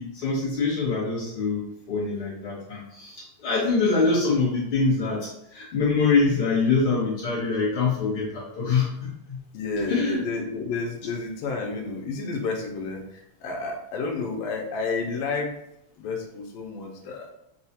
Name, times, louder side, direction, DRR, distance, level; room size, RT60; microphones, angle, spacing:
voice 1, 0.0-9.4 9.9-10.2, left 4 dB, 55° left, -6 dB, 1.8 m, -24 dB
voice 2, 9.5-15.5 16.0-17.3, left 4 dB, 75° left, 1 dB, 1.7 m, -30 dB
6.5 x 2.4 x 2.7 m, 0.79 s
omnidirectional pair, 3.3 m